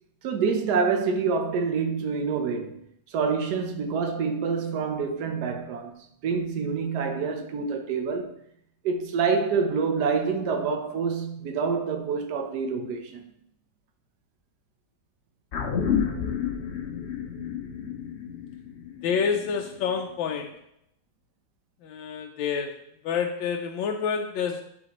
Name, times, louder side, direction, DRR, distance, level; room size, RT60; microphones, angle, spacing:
voice 1, 0.2-2.8 3.1-5.9 6.2-8.4 8.8-13.2, right 5 dB, 65° right, 1.4 m, -27 dB
sound 1, 15.5-20.1 20.4-20.5, left 7 dB, 50° left, 0.8 m, -30 dB
voice 2, 19.0-20.6 21.8-24.6, left 6 dB, 90° left, 1.4 m, -28 dB
11.0 x 4.3 x 3.0 m
omnidirectional pair, 2.0 m